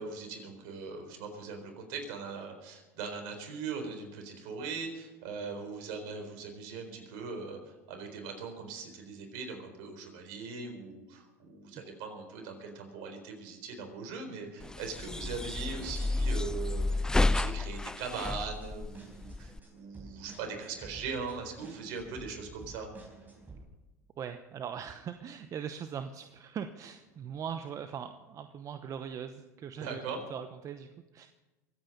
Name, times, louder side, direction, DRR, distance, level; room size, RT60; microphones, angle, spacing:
voice 1, 0.0-22.9 29.8-30.2, right 4 dB, 65° right, 5 dB, 4.2 m, -40 dB
sound 1, 14.6-19.6, left 2 dB, 10° left, 0.4 m, -31 dB
sound 2, 18.3-23.6, right 3 dB, 20° right, 4.5 m, -51 dB
voice 2, 24.2-30.0 30.3-31.3, right 8 dB, 40° right, 9 dB, 0.9 m, -40 dB
24.0 x 9.1 x 5.4 m, 1.1 s
hypercardioid pair, 90°, 9 cm